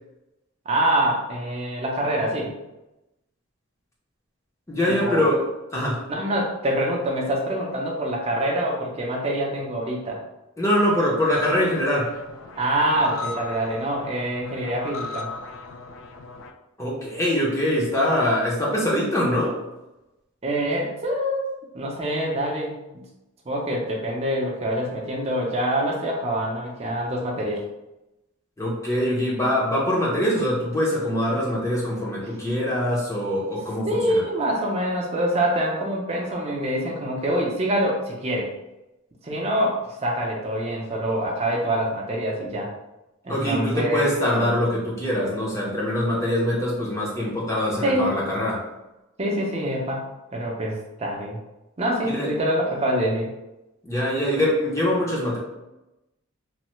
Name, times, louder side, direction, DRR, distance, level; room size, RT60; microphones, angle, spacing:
voice 1, 0.7-2.6 4.9-5.3 6.1-10.2 12.6-15.3 20.4-21.5 21.7-23.0 23.5-27.6 33.9-38.5 39.2-42.7 43.2-44.5 47.8-48.1 49.2-51.4 51.8-53.3, right 1 dB, 30° right, -1 dB, 0.5 m, -25 dB
voice 2, 4.7-5.4 5.7-6.0 10.6-12.2 16.8-19.6 28.6-34.2 43.3-48.6 52.0-52.3 53.8-55.4, left 1 dB, 15° left, -5 dB, 0.5 m, -23 dB
sound 1, 11.3-16.5, left 4 dB, 70° left, 0.3 m, -37 dB
3.2 x 2.1 x 3.0 m, 0.97 s
head